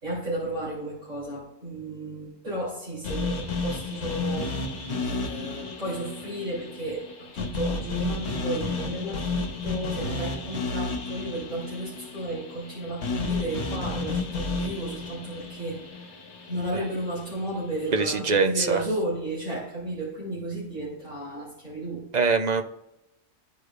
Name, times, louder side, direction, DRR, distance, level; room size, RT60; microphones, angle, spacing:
voice 1, 0.0-4.5 5.0-7.0 7.3-16.1 16.5-22.0, right 1 dB, 70° right, -9 dB, 3.6 m, -33 dB
sound 1, 3.0-17.2, left 3 dB, 65° left, 1.3 m, -32 dB
voice 2, 17.9-18.8 22.1-22.6, right 4 dB, 50° right, 6 dB, 0.5 m, -23 dB
14.0 x 4.8 x 2.5 m, 0.89 s
omnidirectional pair, 1.3 m